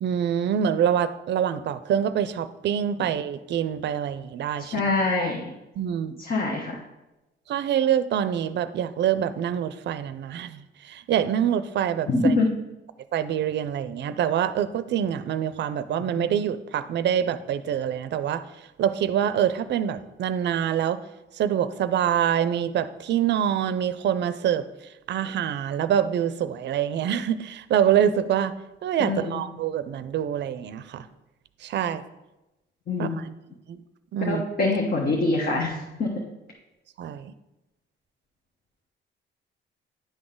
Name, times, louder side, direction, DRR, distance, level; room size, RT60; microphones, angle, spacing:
voice 1, 0.0-4.9 5.8-6.1 7.5-12.3 13.1-18.4 18.8-21.0 21.4-24.6 25.1-28.5 28.8-31.1 31.6-32.0 33.0-33.3 33.7-33.8 34.1-34.4 37.0-37.3, right 9 dB, 65° right, 14 dB, 0.5 m, -25 dB
voice 2, 4.6-5.4 6.2-6.8 12.1-12.5 16.2-16.3 29.0-29.4 32.9-33.2 34.3-36.1, left 3 dB, 50° left, 0 dB, 1.1 m, -24 dB
10.0 x 4.0 x 3.8 m, 0.99 s
cardioid pair, 90°, 20 cm